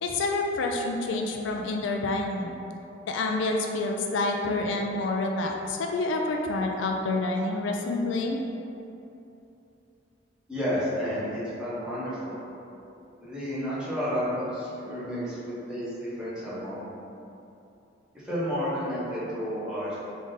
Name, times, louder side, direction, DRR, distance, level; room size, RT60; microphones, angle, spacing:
voice 1, 0.0-2.5 3.1-8.4, left 2 dB, 80° left, 2 dB, 0.3 m, -28 dB
voice 2, 10.5-12.4 13.2-16.8 18.2-20.0, equal, 5° right, -11 dB, 1.0 m, -31 dB
3.6 x 2.5 x 3.8 m, 2.8 s
head